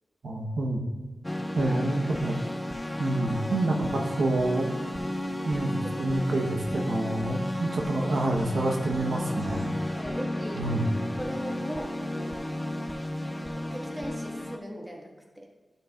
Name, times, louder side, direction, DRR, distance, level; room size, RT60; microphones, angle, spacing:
voice 1, 0.2-0.8 1.6-2.4 3.0-4.7 5.5-9.7 10.6-10.8, right 2 dB, 75° right, 1 dB, 0.9 m, -27 dB
sound 1, 1.2-14.6, left 1 dB, 10° left, 0.5 m, -33 dB
voice 2, 9.9-10.8 11.1-12.4 13.3-15.5, equal, 15° right, -1 dB, 1.4 m, -39 dB
11.5 x 6.4 x 2.3 m, 1.2 s
wide cardioid pair, 90°, 0 cm